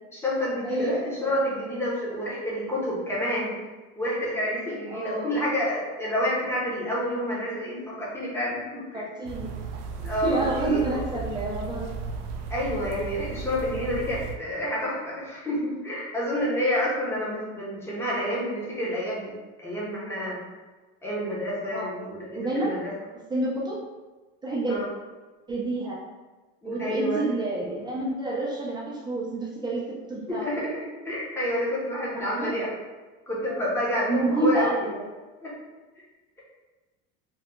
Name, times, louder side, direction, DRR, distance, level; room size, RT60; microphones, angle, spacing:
voice 1, 0.1-3.5 4.0-8.6 8.9-9.0 10.0-11.0 12.5-19.3 19.6-20.4 21.0-22.9 24.7-24.9 26.6-27.3 30.3-32.7 33.3-34.7 35.4-35.5, left 1 dB, 10° left, -7 dB, 0.8 m, -29 dB
voice 2, 0.6-1.0 4.9-5.4 8.9-9.5 10.0-11.9 21.7-21.9 22.3-22.8 23.3-23.8 24.4-24.8 25.5-26.0 26.6-30.5 32.1-32.5 34.1-35.1, right 2 dB, 15° right, -5 dB, 0.5 m, -28 dB
sound 1, 9.2-14.4, right 5 dB, 70° right, 0.5 m, -35 dB
2.7 x 2.3 x 3.6 m, 1.2 s
cardioid pair, 150°, 30 cm